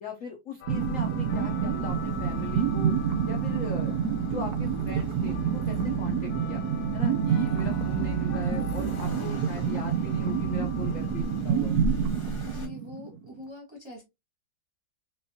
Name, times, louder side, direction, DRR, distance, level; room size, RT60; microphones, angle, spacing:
voice 1, 0.0-2.9 3.3-6.6 6.9-11.8, left 4 dB, 60° left, 0.8 m, -40 dB
sound 1, 0.6-11.4, left 8 dB, 85° left, 1.4 m, -44 dB
Accelerating revving vroom, 0.7-12.7, equal, 30° left, 1.3 m, -38 dB
sound 2, 0.7-13.3, right 7 dB, 75° right, 0.9 m, -28 dB
voice 2, 12.4-14.0, left 1 dB, 20° right, 0.9 m, -43 dB
4.2 x 3.2 x 2.6 m
omnidirectional pair, 2.1 m